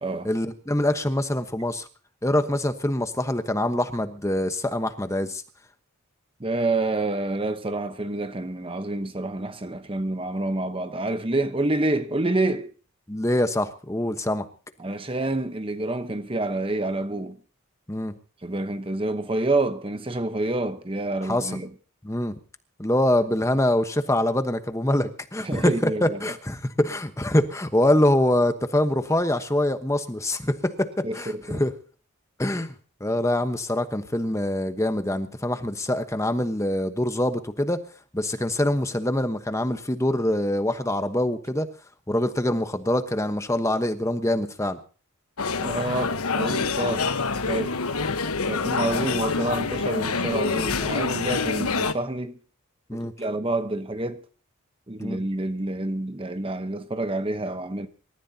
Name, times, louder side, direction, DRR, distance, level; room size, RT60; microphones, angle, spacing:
voice 1, 0.2-1.9 2.2-5.4 13.1-14.5 17.9-18.1 21.2-21.6 22.0-22.4 22.8-31.7 32.4-32.7 33.0-37.8 38.1-41.7 42.1-44.8 52.9-53.1 55.0-55.2, left 1 dB, 15° left, 1.1 m, -24 dB
voice 2, 6.4-12.7 14.8-17.4 18.4-21.7 25.4-26.2 31.0-31.6 45.6-47.2 47.5-47.8 48.5-52.4 52.9-54.2 54.9-57.9, right 2 dB, 25° right, 1.0 m, -28 dB
sound 1, 45.4-51.9, left 4 dB, 80° left, 1.2 m, -26 dB
27.0 x 14.5 x 2.8 m
head